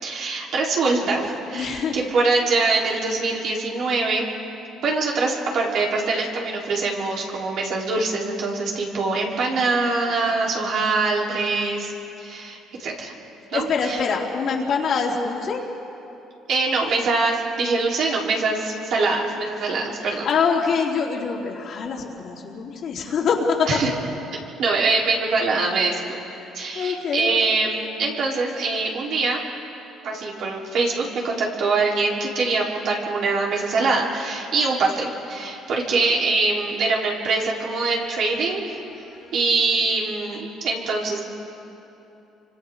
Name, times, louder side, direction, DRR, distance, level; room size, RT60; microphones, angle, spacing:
voice 1, 0.0-4.3 4.8-11.9 12.2-13.1 13.5-14.0 16.5-20.3 23.7-23.9 24.6-26.0 26.5-29.4 30.0-38.8 39.3-41.2, right 3 dB, 65° right, -3 dB, 4.4 m, -23 dB
voice 2, 1.5-2.0 13.5-15.6 19.8-23.7 26.7-27.3 39.0-39.3, left 5 dB, 55° left, -1 dB, 3.2 m, -25 dB
29.0 x 25.0 x 4.0 m, 2.9 s
cardioid pair, 100°, 0 cm